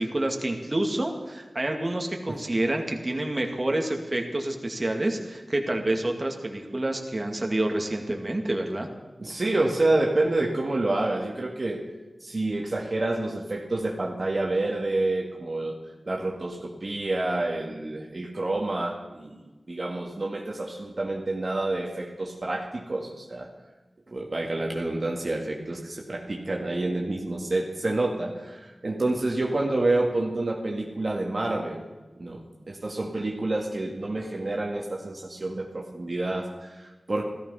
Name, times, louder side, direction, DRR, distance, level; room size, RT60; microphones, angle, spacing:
voice 1, 0.0-8.9, right 1 dB, 35° right, 2 dB, 2.2 m, -28 dB
voice 2, 9.2-11.8 12.2-15.8 16.1-23.5 24.1-31.9 32.2-37.2, right 2 dB, 55° right, 0 dB, 2.0 m, -28 dB
14.5 x 14.0 x 5.6 m, 1.2 s
cardioid pair, 45°, 0 cm